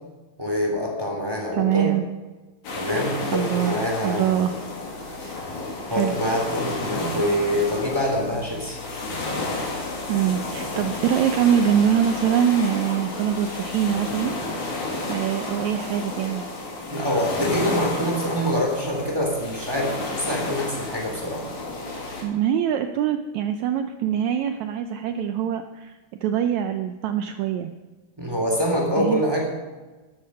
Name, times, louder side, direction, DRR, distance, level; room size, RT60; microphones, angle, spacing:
voice 1, 0.4-1.9 2.7-4.5 5.9-8.8 16.9-21.5 28.2-29.5, equal, 5° right, -1 dB, 2.7 m, -25 dB
voice 2, 1.5-2.0 3.3-3.8 4.0-4.6 5.0-5.3 5.9-6.1 10.1-14.3 15.1-16.4 22.2-25.9 26.2-27.7 29.0-29.2, right 9 dB, 85° right, 8 dB, 1.6 m, -23 dB
sound 1, 2.6-22.2, left 2 dB, 60° left, 3.7 m, -31 dB
13.5 x 11.5 x 5.6 m, 1.2 s
omnidirectional pair, 4.0 m